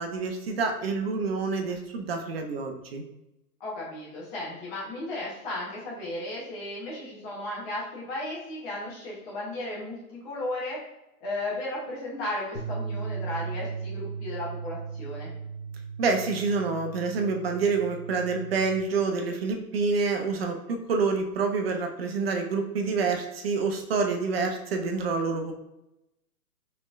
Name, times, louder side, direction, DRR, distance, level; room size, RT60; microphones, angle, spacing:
voice 1, 0.0-3.0 16.0-25.5, right 4 dB, 40° right, 4 dB, 0.5 m, -27 dB
voice 2, 3.6-10.8 11.2-15.3, left 1 dB, 20° left, -6 dB, 0.9 m, -35 dB
sound 1, 12.5-18.8, right 5 dB, 90° left, 1.1 m, -37 dB
4.2 x 3.2 x 2.4 m, 0.90 s
hypercardioid pair, 135°, 46 cm